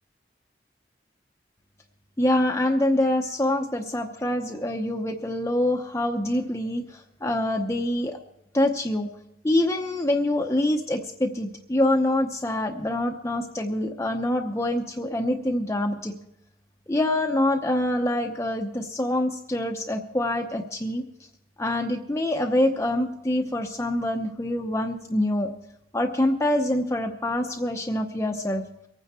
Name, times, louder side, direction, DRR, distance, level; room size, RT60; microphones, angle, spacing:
voice 1, 2.2-8.2 8.5-9.1 9.4-16.1 16.9-21.0 21.6-25.5 25.9-28.6, left 1 dB, 15° left, 3 dB, 0.8 m, -25 dB
23.5 x 9.5 x 4.3 m, 0.84 s
head